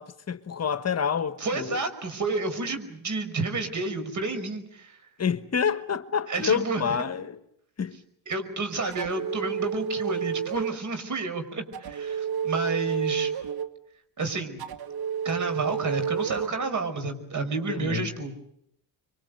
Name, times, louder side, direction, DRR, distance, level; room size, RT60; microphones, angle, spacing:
voice 1, 0.0-1.8 5.2-7.4 7.8-8.0 17.7-18.1, left 7 dB, 40° left, 1.3 m, -28 dB
voice 2, 1.4-5.0 6.3-6.8 8.3-13.3 14.2-14.6 15.2-18.4, right 3 dB, 45° right, 5.6 m, -30 dB
sound 1, 8.9-10.8 11.7-13.7 14.6-16.5, right 7 dB, 65° right, 1.9 m, -30 dB
27.0 x 23.5 x 8.1 m
cardioid pair, 80°, 41 cm